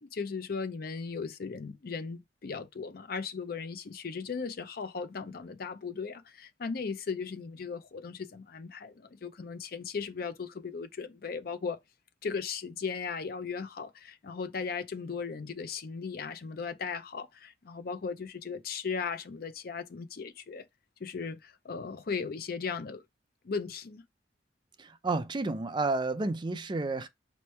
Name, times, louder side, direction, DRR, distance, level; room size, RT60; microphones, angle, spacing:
voice 1, 0.0-11.8 12.2-20.6 21.0-23.0 23.4-24.0, left 5 dB, 55° left, 0.5 m, -37 dB
voice 2, 24.8-27.1, right 3 dB, 25° right, 0.5 m, -31 dB
4.3 x 3.1 x 3.2 m
head